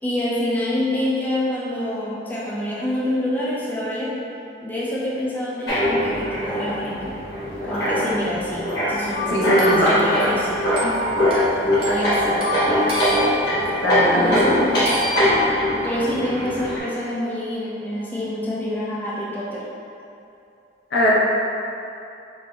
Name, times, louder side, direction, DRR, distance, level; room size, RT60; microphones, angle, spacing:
voice 1, 0.0-4.2 4.6-7.2 7.6-10.7 11.9-12.6 14.2-14.8 15.8-19.6, left 1 dB, 10° left, -7 dB, 0.4 m, -26 dB
sound 1, 5.7-16.8, equal, 70° left, 1.2 m, -22 dB
sound 2, 9.1-13.9 14.8-15.4, left 1 dB, 30° right, 0.6 m, -29 dB
voice 2, 9.3-10.0 10.8-10.9 13.8-14.6 20.9-21.1, equal, 85° left, -6 dB, 0.7 m, -19 dB
5.0 x 2.5 x 2.3 m, 2.7 s
head